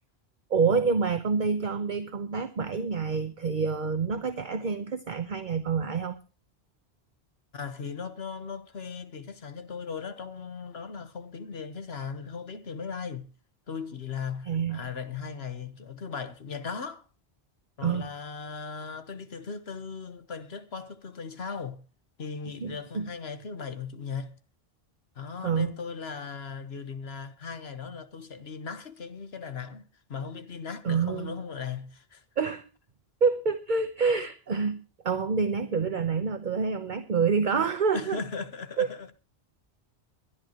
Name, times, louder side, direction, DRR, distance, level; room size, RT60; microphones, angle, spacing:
voice 1, 0.5-6.2 14.5-14.8 17.8-18.1 22.6-23.1 25.4-25.7 30.8-31.3 32.4-32.6 33.2-38.2 38.8-38.9, right 5 dB, 50° right, 1.1 m, -27 dB
voice 2, 7.5-13.3 13.7-17.0 17.8-21.8 22.2-24.4 25.1-32.2 37.9-39.1, left 5 dB, 75° left, 1.5 m, -38 dB
22.5 x 10.5 x 3.0 m
omnidirectional pair, 1.1 m